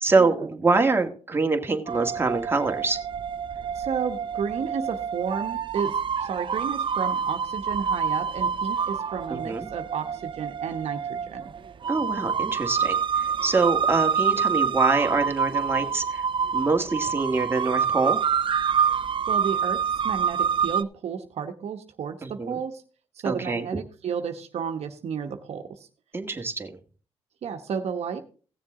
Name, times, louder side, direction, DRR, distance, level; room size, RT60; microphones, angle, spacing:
voice 1, 0.0-3.0 9.4-9.7 11.9-16.2 16.5-18.2 22.2-22.6 23.2-23.7 26.1-26.7, right 3 dB, 20° right, 3 dB, 1.7 m, -25 dB
sound 1, 1.9-20.8, right 7 dB, 50° right, 0.5 m, -27 dB
voice 2, 3.7-11.5 19.3-22.8 23.2-25.7 27.4-28.2, right 6 dB, 70° right, 6 dB, 1.1 m, -32 dB
16.0 x 7.1 x 3.7 m, 0.39 s
cardioid pair, 75°, 11 cm